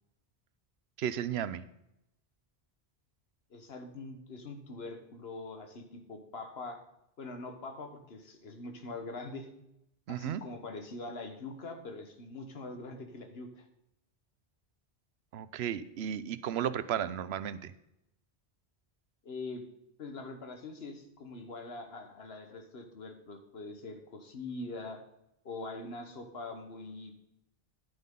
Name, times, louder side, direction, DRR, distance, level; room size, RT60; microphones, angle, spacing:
voice 1, 1.0-1.6 10.1-10.4 15.3-17.7, right 10 dB, 90° right, 15 dB, 0.9 m, -34 dB
voice 2, 3.5-6.8 7.2-9.5 10.1-13.7 19.2-19.6 20.0-25.0 25.4-27.2, left 3 dB, 75° left, 6 dB, 1.4 m, -43 dB
10.5 x 9.3 x 3.7 m, 0.84 s
omnidirectional pair, 1.0 m